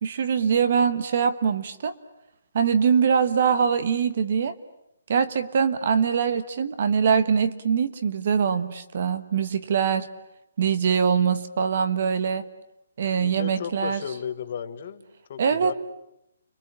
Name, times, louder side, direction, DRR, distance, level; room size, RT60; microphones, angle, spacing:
voice 1, 0.0-1.9 2.5-4.5 5.1-10.1 10.6-12.4 13.0-14.0 15.4-15.7, right 6 dB, 40° right, 11 dB, 1.3 m, -23 dB
voice 2, 13.2-15.0 15.3-15.7, left 8 dB, 35° left, 9 dB, 1.6 m, -34 dB
29.5 x 22.0 x 8.6 m, 0.82 s
hypercardioid pair, 175°, 0 cm